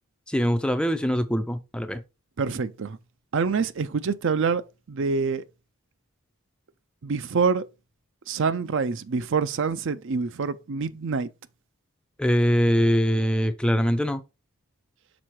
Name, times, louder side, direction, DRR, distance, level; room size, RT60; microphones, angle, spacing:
voice 1, 0.3-2.0 12.2-14.2, equal, 5° left, 0.4 m, -23 dB
voice 2, 2.4-3.0 3.3-4.6 4.9-5.4 7.0-7.6 8.3-11.3, right 5 dB, 55° right, 0.5 m, -26 dB
6.1 x 3.7 x 4.6 m
head